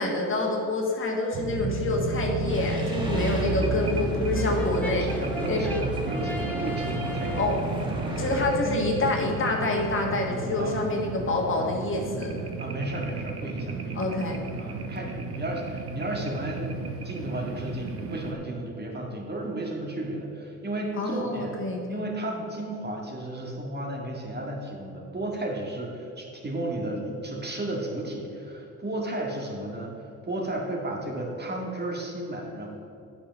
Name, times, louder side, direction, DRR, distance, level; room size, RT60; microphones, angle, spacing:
voice 1, 0.0-5.1 5.5-5.6 7.4-7.6 8.1-12.3 13.9-14.4 21.0-22.0, left 2 dB, 45° left, 0 dB, 1.6 m, -27 dB
sound 1, 1.3-18.3, right 3 dB, 50° right, 0.9 m, -33 dB
sound 2, 2.4-8.5, right 1 dB, 15° right, 1.6 m, -35 dB
Brass instrument, 4.3-7.7, left 1 dB, 5° left, 1.1 m, -36 dB
voice 2, 4.8-7.5 8.0-8.8 10.6-10.7 12.6-14.0 14.6-21.5 21.9-32.7, right 1 dB, 35° right, -1 dB, 1.9 m, -33 dB
8.5 x 6.0 x 5.3 m, 2.8 s
cardioid pair, 90°, 30 cm